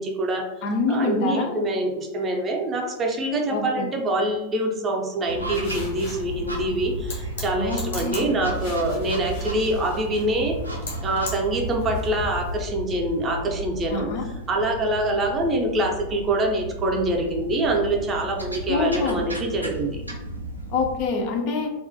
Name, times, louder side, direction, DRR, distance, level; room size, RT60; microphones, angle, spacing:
voice 1, 0.0-0.4 0.9-10.6 11.0-14.1 14.5-20.0, right 1 dB, 25° right, 1 dB, 0.4 m, -25 dB
voice 2, 0.6-1.6 3.5-3.9 7.5-8.3 13.9-14.3 18.7-19.2 20.7-21.7, left 4 dB, 45° left, 3 dB, 0.3 m, -26 dB
sound 1, 5.3-21.0, right 1 dB, 90° right, 0.4 m, -34 dB
sound 2, 5.5-12.7, left 3 dB, 70° left, 0.8 m, -38 dB
2.3 x 2.1 x 2.6 m, 0.99 s
figure-of-eight pair, 90°, 0 cm